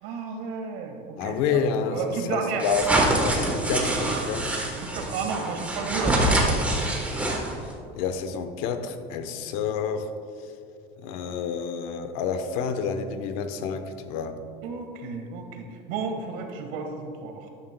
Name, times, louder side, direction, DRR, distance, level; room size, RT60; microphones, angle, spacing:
voice 1, 0.0-1.6 1.9-2.6 4.5-6.6 14.6-17.5, right 5 dB, 85° right, 4 dB, 1.5 m, -32 dB
voice 2, 1.2-2.0 2.3-2.9 3.2-4.5 7.9-10.1 11.0-14.4, left 6 dB, 80° left, 8 dB, 0.9 m, -29 dB
sound 1, 2.6-7.7, right 1 dB, 5° right, 1.1 m, -25 dB
12.5 x 11.5 x 2.2 m, 2.4 s
cardioid pair, 170°, 18 cm